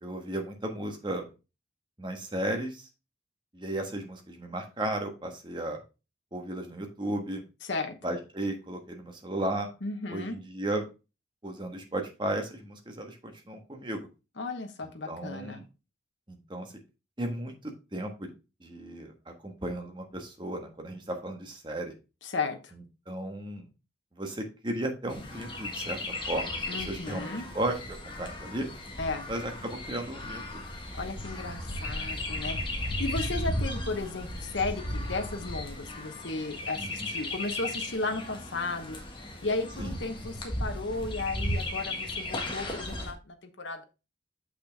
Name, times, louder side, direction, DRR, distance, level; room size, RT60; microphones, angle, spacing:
voice 1, 0.0-1.2 2.0-2.9 3.5-5.8 6.3-7.4 8.0-9.7 10.1-10.8 11.4-14.1 15.1-15.6 16.3-16.7 17.2-17.5 17.9-18.3 18.6-19.1 19.4-21.9 23.1-23.7 24.2-26.0 26.3-28.7 29.3-30.6 36.7-36.9 39.8-39.9, right 1 dB, 25° right, 3 dB, 1.4 m, -34 dB
voice 2, 7.6-8.0 9.8-10.4 14.4-15.6 22.2-22.6 26.7-27.5 29.0-29.3 30.9-39.0 39.4-43.8, left 3 dB, 80° left, 6 dB, 1.1 m, -34 dB
Chirp tweet, 25.1-43.1, left 1 dB, 25° left, 1.6 m, -35 dB
6.5 x 5.9 x 3.5 m, 0.29 s
head